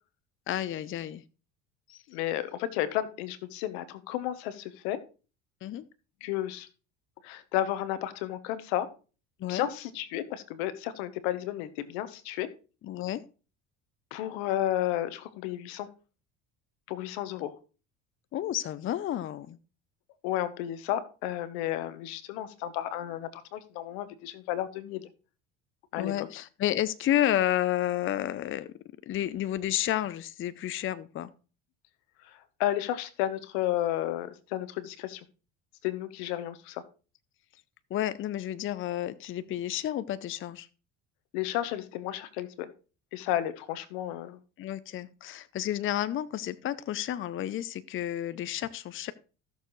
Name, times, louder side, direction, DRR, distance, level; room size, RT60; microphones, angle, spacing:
voice 1, 0.5-1.2 1.9-2.0 5.6-5.9 9.4-9.7 12.8-13.2 18.3-19.6 26.0-28.7 29.1-31.3 37.9-40.7 44.6-49.1, left 12 dB, 40° left, 15 dB, 0.6 m, -31 dB
voice 2, 2.1-5.0 6.2-6.7 7.2-8.9 9.4-12.5 14.1-15.9 16.9-17.5 20.2-25.1 25.9-26.3 32.2-35.2 35.8-36.8 41.3-42.7 43.1-44.4, left 13 dB, 85° left, 13 dB, 1.1 m, -32 dB
15.0 x 6.8 x 3.2 m, 0.35 s
supercardioid pair, 100°, 31 cm